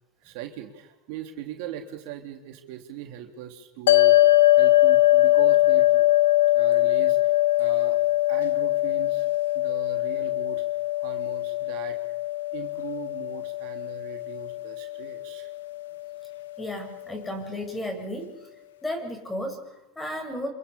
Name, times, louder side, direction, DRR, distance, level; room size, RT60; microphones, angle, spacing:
voice 1, 0.2-4.2 4.6-6.1 6.5-8.0 8.3-9.3 9.5-10.6 11.0-12.0 12.5-15.5, right 11 dB, 65° right, 3 dB, 3.3 m, -40 dB
sound 1, 3.9-16.4, left 16 dB, 85° left, 1.3 m, -22 dB
voice 2, 16.6-18.5 18.8-20.5, left 1 dB, 10° left, 4 dB, 7.4 m, -34 dB
27.0 x 26.5 x 7.2 m, 0.98 s
hypercardioid pair, 110°, 0 cm